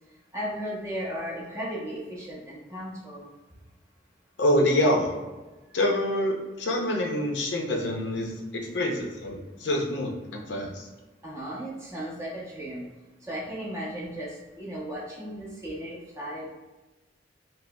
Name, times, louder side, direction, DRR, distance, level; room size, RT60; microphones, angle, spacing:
voice 1, 0.3-3.3 11.2-12.9 13.2-16.5, equal, 15° right, -6 dB, 0.8 m, -35 dB
voice 2, 4.4-5.1 5.7-10.9, left 1 dB, 85° left, 0 dB, 0.6 m, -26 dB
5.0 x 2.0 x 2.2 m, 1.2 s
head